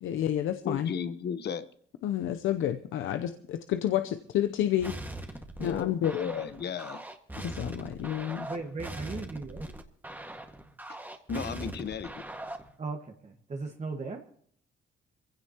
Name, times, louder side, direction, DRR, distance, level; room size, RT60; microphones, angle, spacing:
voice 1, 0.0-0.9 2.0-5.0 5.6-6.2 7.4-8.5, left 11 dB, 80° left, 0.8 m, -29 dB
voice 2, 0.6-1.7 5.6-7.0 11.3-12.1, left 7 dB, 55° left, 1.1 m, -34 dB
beat pleura fx, 4.8-12.7, right 1 dB, 10° right, 1.8 m, -41 dB
voice 3, 8.2-9.7 11.6-11.7 12.8-14.2, right 3 dB, 35° right, 1.6 m, -38 dB
23.0 x 16.0 x 3.0 m
cardioid pair, 90°, 20 cm